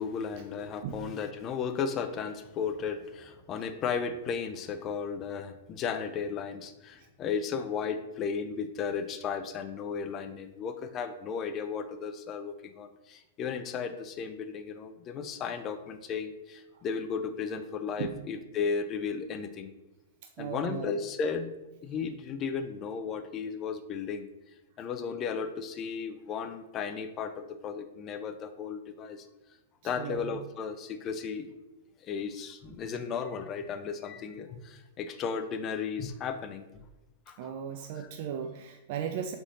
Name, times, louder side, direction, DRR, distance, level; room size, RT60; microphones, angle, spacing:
voice 1, 0.0-19.7 20.4-21.5 21.8-24.3 24.8-29.3 29.8-31.5 32.0-36.9 37.3-37.5 37.9-38.1, left 6 dB, 25° left, 8 dB, 0.4 m, -35 dB
voice 2, 20.4-20.9 30.0-30.3 37.4-39.3, right 8 dB, 50° right, 5 dB, 0.3 m, -36 dB
3.7 x 3.5 x 4.0 m, 1.0 s
hypercardioid pair, 150°, 0 cm